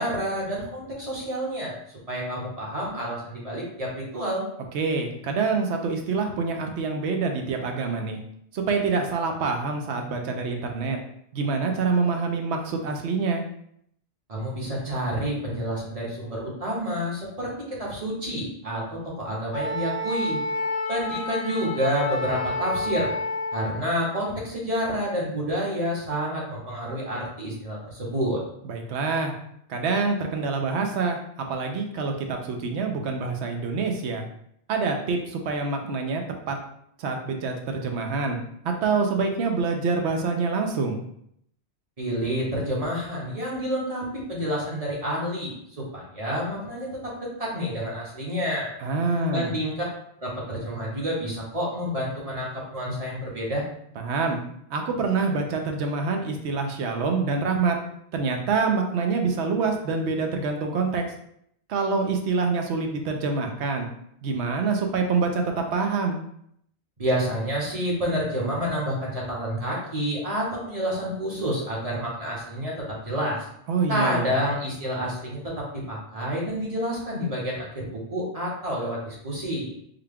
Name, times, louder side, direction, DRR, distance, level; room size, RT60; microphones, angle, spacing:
voice 1, 0.0-1.8 2.1-4.5 14.3-20.4 20.9-23.1 23.5-28.4 42.0-48.7 49.1-49.7 50.2-53.6 67.0-73.5 73.9-79.7, equal, 35° right, -4 dB, 1.0 m, -29 dB
voice 2, 4.7-8.2 8.5-11.0 11.3-13.4 28.6-29.4 29.7-34.2 34.7-36.2 36.5-36.6 37.0-38.4 38.6-41.0 48.8-49.5 54.0-54.4 54.7-57.8 58.1-61.0 61.7-63.9 64.2-66.2 73.7-74.4, right 4 dB, 75° right, 3 dB, 0.9 m, -26 dB
Wind instrument woodwind instrument, 19.5-23.8, left 2 dB, 55° left, 0.9 m, -29 dB
3.7 x 2.2 x 3.5 m, 0.71 s
omnidirectional pair, 1.2 m